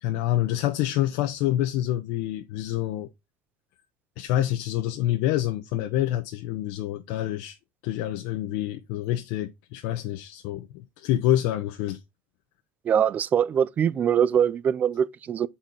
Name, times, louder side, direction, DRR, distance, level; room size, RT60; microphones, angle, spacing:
voice 1, 0.0-3.1 4.2-7.6 7.8-12.0, left 13 dB, 70° left, 0.7 m, -27 dB
voice 2, 12.9-15.5, right 8 dB, 30° right, 0.4 m, -23 dB
6.1 x 4.2 x 3.8 m
cardioid pair, 125°, 5 cm